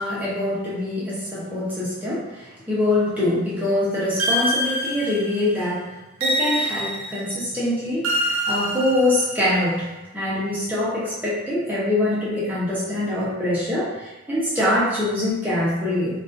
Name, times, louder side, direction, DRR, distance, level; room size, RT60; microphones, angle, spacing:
voice 1, 0.0-6.0 6.2-16.2, left 1 dB, 10° right, -8 dB, 0.6 m, -24 dB
sound 1, 4.2-5.5 6.2-7.3 8.0-9.6, equal, 85° right, 0.6 m, -25 dB
2.3 x 2.3 x 2.4 m, 1.0 s
head